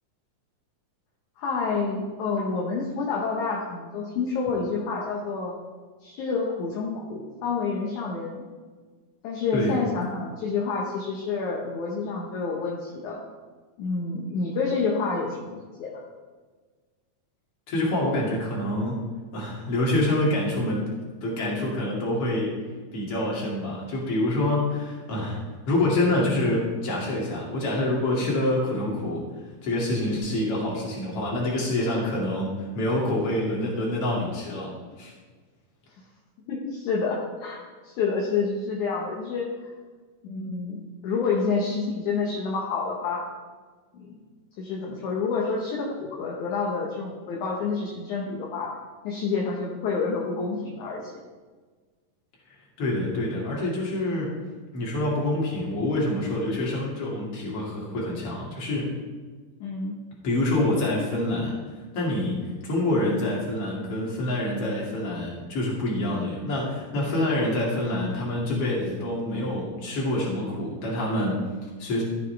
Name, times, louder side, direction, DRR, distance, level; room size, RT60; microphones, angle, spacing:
voice 1, 1.4-5.5 6.0-8.5 9.2-13.2 13.8-16.0 36.5-39.5 40.2-43.2 43.9-44.2 44.6-48.7 49.0-51.1 59.6-60.0, left 4 dB, 70° left, -2 dB, 2.5 m, -28 dB
voice 2, 17.7-19.1 19.3-20.9 21.2-22.6 22.9-29.2 29.6-35.1 52.8-54.3 54.7-58.9 60.2-61.6 61.9-72.0, left 1 dB, 45° left, -4 dB, 3.2 m, -26 dB
14.0 x 7.5 x 3.4 m, 1.4 s
omnidirectional pair, 3.9 m